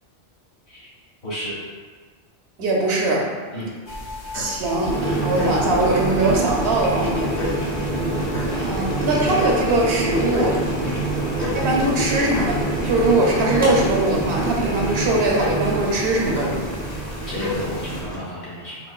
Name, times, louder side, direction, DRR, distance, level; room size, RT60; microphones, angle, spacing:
voice 1, 1.2-1.6 3.5-3.7 10.8-11.0 17.2-18.8, equal, 75° left, -8 dB, 1.4 m, -31 dB
voice 2, 2.6-3.3 4.3-7.3 8.6-10.6 11.5-16.6, right 2 dB, 70° right, -2 dB, 0.8 m, -21 dB
sound 1, 3.9-18.0, left 2 dB, 50° left, 0.7 m, -34 dB
Boiling, 4.7-18.2, right 2 dB, 10° right, 0.4 m, -26 dB
4.2 x 2.2 x 2.3 m, 1.5 s
omnidirectional pair, 1.1 m